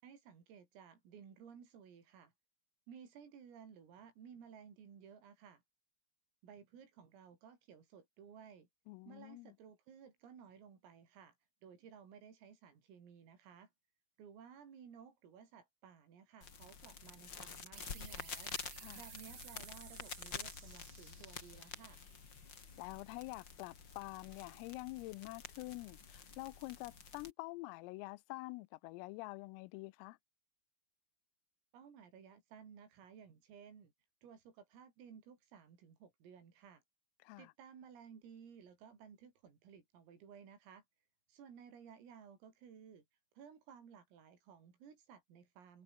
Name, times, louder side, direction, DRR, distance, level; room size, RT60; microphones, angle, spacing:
voice 1, 0.0-2.3 2.9-5.6 6.4-8.7 9.1-11.4 11.6-13.7 14.2-18.5 18.9-22.0 31.7-33.9 34.2-36.8 37.4-40.8 41.3-43.0 43.4-45.8, right 7 dB, 75° right, 7.8 m, -57 dB
voice 2, 8.9-9.6 18.8-19.0 22.8-30.2 37.2-37.5, left 22 dB, 90° left, 3.3 m, -47 dB
sound 1, 16.4-27.3, left 5 dB, 45° left, 1.6 m, -49 dB
sound 2, 17.7-23.0, right 7 dB, 60° right, 7.7 m, -57 dB
omnidirectional pair, 6.0 m